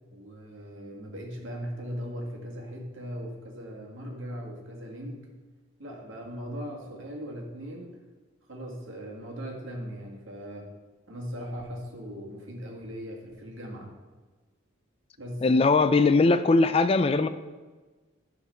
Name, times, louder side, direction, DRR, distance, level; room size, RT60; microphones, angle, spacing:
voice 1, 0.1-5.3 5.8-7.9 8.5-10.7 11.1-13.9 15.2-15.5, equal, 65° right, -1 dB, 1.8 m, -39 dB
voice 2, 15.4-17.3, left 3 dB, 25° left, 11 dB, 0.3 m, -20 dB
9.5 x 3.9 x 6.6 m, 1.3 s
head